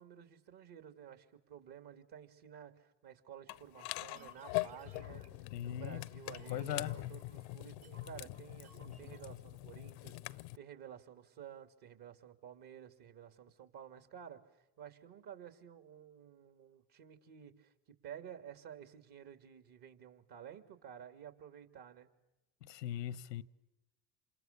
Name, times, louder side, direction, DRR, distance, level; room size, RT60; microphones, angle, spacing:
voice 1, 0.0-22.1, right 9 dB, 50° right, 3.1 m, -53 dB
sound 1, 3.5-10.6, left 21 dB, 65° left, 0.8 m, -43 dB
sound 2, 4.1-9.9, right 4 dB, 70° right, 5.3 m, -61 dB
voice 2, 5.5-6.1 6.5-7.0 22.6-23.4, left 11 dB, 85° left, 1.1 m, -39 dB
27.5 x 27.0 x 7.0 m
hypercardioid pair, 80°, 48 cm